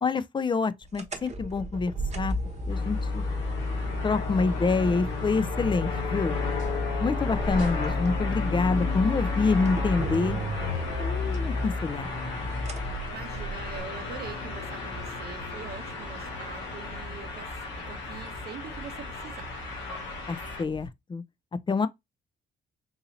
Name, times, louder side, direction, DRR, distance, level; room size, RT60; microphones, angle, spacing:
voice 1, 0.0-2.3 2.7-3.2 4.0-6.4 7.0-10.4 11.0-12.1 20.3-21.2 21.7-21.9, left 4 dB, 25° left, 0.4 m, -27 dB
sound 1, 0.9-13.8, left 2 dB, 35° right, 0.9 m, -31 dB
sound 2, 2.4-20.9, left 1 dB, 45° left, 1.4 m, -42 dB
sound 3, 2.7-20.6, left 4 dB, 90° left, 0.8 m, -36 dB
voice 2, 13.1-19.5, right 7 dB, 60° right, 0.6 m, -43 dB
3.9 x 2.8 x 2.7 m
supercardioid pair, 60°, 19 cm